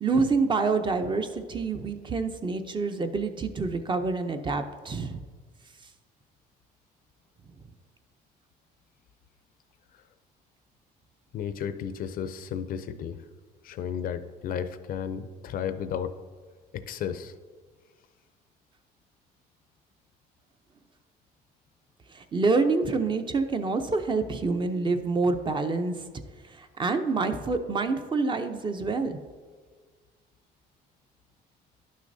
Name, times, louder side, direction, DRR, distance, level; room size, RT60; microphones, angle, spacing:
voice 1, 0.0-5.2 22.1-25.9 26.5-29.2, right 4 dB, 30° right, 7 dB, 0.5 m, -27 dB
voice 2, 11.3-13.2 13.6-16.1 16.7-17.3, left 8 dB, 60° left, 11 dB, 0.5 m, -33 dB
11.0 x 6.3 x 2.7 m, 1.5 s
cardioid pair, 110°, 17 cm